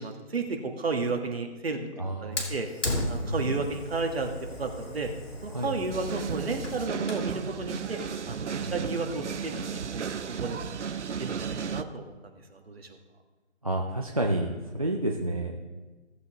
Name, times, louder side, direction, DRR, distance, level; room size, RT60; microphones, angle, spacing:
voice 1, 0.0-1.9 2.2-2.7 3.1-4.3 4.6-5.1 5.4-8.0 8.3-10.7 11.2-12.9, right 3 dB, 55° right, 4 dB, 1.6 m, -33 dB
voice 2, 2.0-2.5 3.2-3.6 5.5-5.7 8.6-8.8 13.6-14.5 14.7-15.7, right 1 dB, 30° right, 0 dB, 0.5 m, -30 dB
Fire, 2.4-7.3, left 1 dB, 85° left, 3.5 m, -36 dB
sound 1, 5.9-11.8, right 6 dB, 75° right, 0.7 m, -34 dB
16.5 x 8.0 x 3.0 m, 1.2 s
hypercardioid pair, 170°, 36 cm